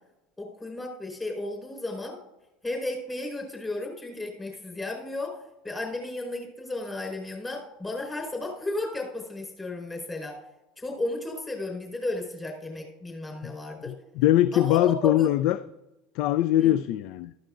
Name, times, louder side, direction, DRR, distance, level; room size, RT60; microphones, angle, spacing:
voice 1, 0.4-2.2 2.6-5.4 5.6-10.4 10.8-13.9 14.5-15.3 16.6-16.8, left 2 dB, 20° left, 1 dB, 4.5 m, -34 dB
voice 2, 13.9-15.6 16.1-17.3, left 13 dB, 60° left, 17 dB, 0.3 m, -22 dB
14.5 x 13.0 x 2.5 m, 0.99 s
hypercardioid pair, 75°, 0 cm